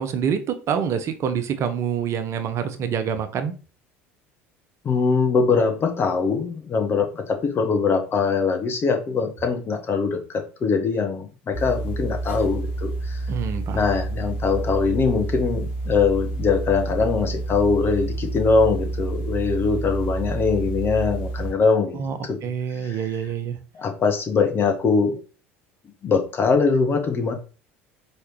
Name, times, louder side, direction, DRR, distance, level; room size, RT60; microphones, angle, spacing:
voice 1, 0.0-3.5 13.3-13.8 21.9-23.6, right 7 dB, 45° right, 8 dB, 0.6 m, -26 dB
voice 2, 4.8-13.2 13.7-22.4 22.7-23.0 23.7-25.2 26.0-27.3, left 4 dB, 35° left, 5 dB, 1.0 m, -22 dB
sound 1, 11.5-21.5, right 2 dB, 75° left, 1.5 m, -29 dB
4.7 x 3.2 x 3.0 m, 0.35 s
figure-of-eight pair, 65°, 7 cm